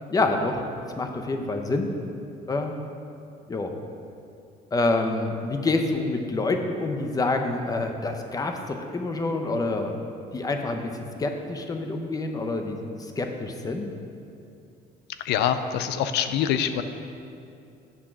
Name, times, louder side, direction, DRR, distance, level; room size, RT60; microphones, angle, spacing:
voice 1, 0.1-0.6 1.0-1.9 2.5-2.8 3.5-3.7 4.7-9.9 10.3-10.9 11.2-12.9 13.2-13.9, left 2 dB, 20° left, 5 dB, 0.6 m, -27 dB
voice 2, 15.2-16.8, left 9 dB, 80° left, 10 dB, 0.5 m, -25 dB
8.3 x 3.7 x 5.9 m, 2.5 s
cardioid pair, 110°, 17 cm